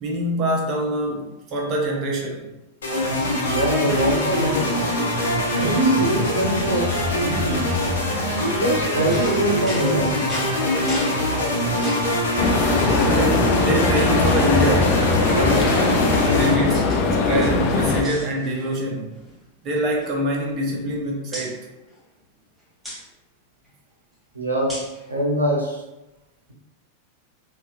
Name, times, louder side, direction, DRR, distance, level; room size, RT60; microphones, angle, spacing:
voice 1, 0.0-2.5 13.0-15.1 15.3-16.8 17.3-19.2 19.6-21.7, right 1 dB, 35° right, -1 dB, 0.7 m, -25 dB
sound 1, 2.8-16.5, left 1 dB, 65° left, 0.8 m, -23 dB
voice 2, 3.4-4.8 5.5-6.9 7.2-7.7 8.4-10.1 24.3-24.8 25.1-25.8, right 1 dB, 80° right, -3 dB, 0.6 m, -23 dB
sound 2, 8.7-12.2 12.8-13.4 13.8-13.9 14.3-15.3 16.1-17.0 17.3-18.9 19.1-19.3 19.7-20.9 21.3-21.5 22.8-23.0 24.7-25.0, left 1 dB, ahead, 0.9 m, -36 dB
sound 3, 12.4-18.0, left 3 dB, 40° left, 0.4 m, -20 dB
4.1 x 2.3 x 2.3 m, 0.96 s
figure-of-eight pair, 90°, 0 cm